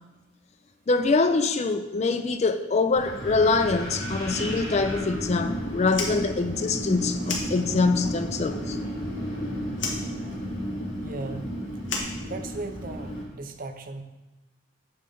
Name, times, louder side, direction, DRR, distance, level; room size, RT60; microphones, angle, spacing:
voice 1, 0.9-8.8, left 3 dB, 35° left, 9 dB, 0.4 m, -24 dB
Wind, 2.9-13.2, equal, 90° left, 2.9 m, -33 dB
Fire, 5.8-8.1 8.4-9.4 9.7-12.9, left 4 dB, 70° left, 1.4 m, -35 dB
voice 2, 11.0-11.5 12.2-14.0, right 2 dB, 45° right, 7 dB, 0.6 m, -37 dB
8.4 x 5.6 x 3.8 m, 1.1 s
head